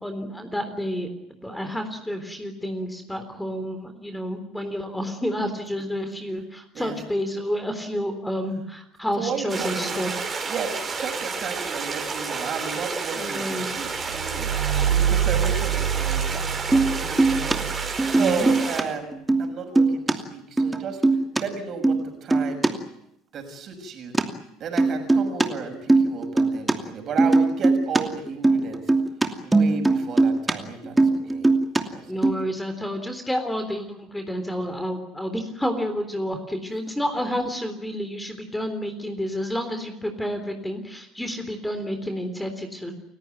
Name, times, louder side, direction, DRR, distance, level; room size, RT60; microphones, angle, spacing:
voice 1, 0.0-10.1 13.2-13.8 18.1-18.5 32.1-43.0, equal, 5° left, 7 dB, 3.7 m, -30 dB
voice 2, 9.2-10.0 10.4-14.5 14.9-16.4 16.8-22.7 23.3-24.1 24.6-28.8 29.4-31.5 31.9-32.4, right 6 dB, 45° right, 6 dB, 6.6 m, -33 dB
sound 1, 9.5-18.8, right 4 dB, 25° right, 5.4 m, -31 dB
sound 2, 13.9-18.6, right 9 dB, 70° right, 4.9 m, -26 dB
sound 3, 16.7-16.9 17.2-17.6 18.0-18.8 19.1-19.5 19.8-20.1 20.6-21.4 21.8-22.0 22.3-22.7 24.1-24.2 24.8-25.5 25.7-26.7 27.2-28.0 28.3-30.5 30.8-31.8 32.2-32.3, right 3 dB, 10° right, 2.7 m, -19 dB
30.0 x 16.5 x 9.4 m, 0.79 s
figure-of-eight pair, 65°, 0 cm